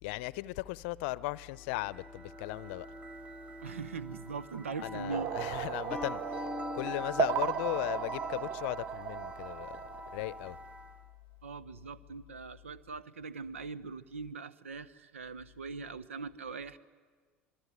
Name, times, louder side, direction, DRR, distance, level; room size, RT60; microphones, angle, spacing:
voice 1, 0.0-2.9 4.8-9.8 10.1-10.6, left 20 dB, 60° left, 0.7 m, -37 dB
sound 1, 1.6-11.1, equal, 20° right, 1.6 m, -45 dB
voice 2, 3.6-5.3 11.4-16.8, right 4 dB, 80° right, 1.0 m, -41 dB
sound 2, 5.1-10.5, right 9 dB, 45° right, 0.8 m, -36 dB
sound 3, 5.9-8.5, left 3 dB, 5° left, 1.9 m, -44 dB
25.5 x 22.0 x 9.6 m
figure-of-eight pair, 75°, 7 cm